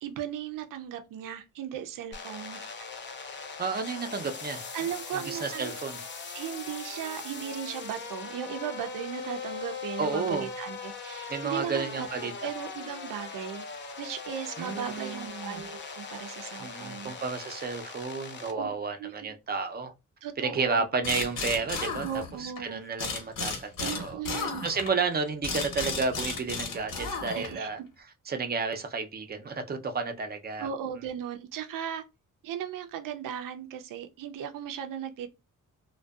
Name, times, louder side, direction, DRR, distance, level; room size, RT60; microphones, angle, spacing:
voice 1, 0.0-2.6 4.7-5.7 6.3-12.1 12.4-13.7 14.0-17.1 18.5-18.7 19.0-19.3 20.2-20.9 22.0-22.8 23.8-24.6 27.3-27.9 30.6-32.0 32.4-35.3, right 9 dB, 85° right, 0.5 m, -37 dB
sound 1, 2.1-18.5, left 5 dB, 35° left, 0.5 m, -40 dB
voice 2, 3.6-4.6 5.1-6.0 10.0-10.5 11.3-12.5 14.6-15.6 16.6-19.9 20.4-22.0 22.4-27.8 28.3-30.7 31.0-31.1, right 4 dB, 30° right, 0.4 m, -32 dB
sound 2, 21.0-22.6 23.0-27.7, left 4 dB, 80° left, 1.1 m, -34 dB
2.5 x 2.2 x 2.3 m
cardioid pair, 110°, 32 cm